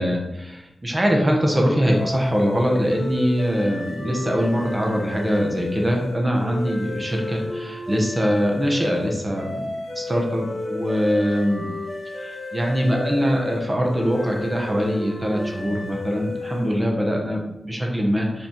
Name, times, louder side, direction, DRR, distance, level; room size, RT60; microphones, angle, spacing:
voice 1, 0.0-9.6 9.9-11.7 12.2-18.5, equal, 15° right, 0 dB, 1.0 m, -23 dB
sound 1, 1.9-16.9, left 2 dB, 30° left, 1.3 m, -33 dB
5.8 x 4.2 x 4.4 m, 0.90 s
wide cardioid pair, 180°, 0 cm